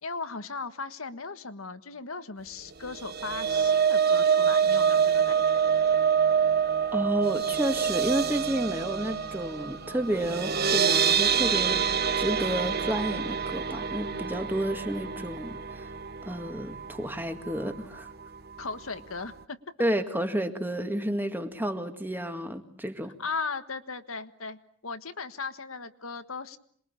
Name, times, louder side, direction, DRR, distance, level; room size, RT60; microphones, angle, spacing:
voice 1, 0.0-5.6 18.6-19.7 23.2-26.6, left 4 dB, 80° left, 10 dB, 1.6 m, -37 dB
sound 1, 2.9-17.1 17.4-17.7 18.0-18.1, right 7 dB, 45° right, 1.1 m, -26 dB
voice 2, 6.9-11.8 12.2-15.9 16.2-18.1 19.8-23.1, right 1 dB, 10° right, 7 dB, 1.9 m, -31 dB
27.0 x 22.0 x 8.7 m, 0.62 s
head